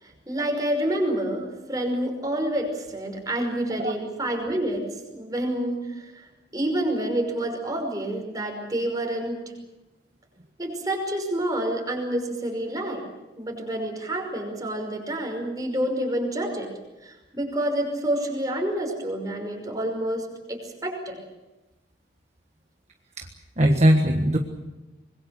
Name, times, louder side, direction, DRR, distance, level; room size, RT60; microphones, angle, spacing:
voice 1, 0.0-9.5 10.6-13.0 13.4-16.7 17.0-21.2, right 1 dB, 20° right, 2 dB, 5.6 m, -28 dB
voice 2, 23.6-24.4, equal, 40° right, 4 dB, 1.5 m, -19 dB
26.0 x 21.5 x 6.9 m, 1.1 s
head